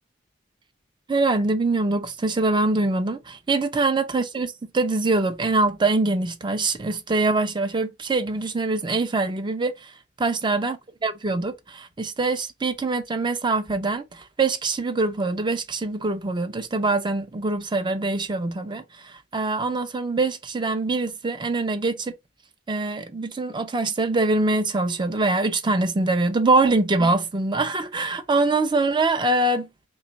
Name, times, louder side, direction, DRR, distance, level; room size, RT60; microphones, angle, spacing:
voice 1, 1.1-9.9 10.2-22.1 22.7-29.7, right 3 dB, 25° right, 0.5 m, -24 dB
3.0 x 2.3 x 3.8 m
head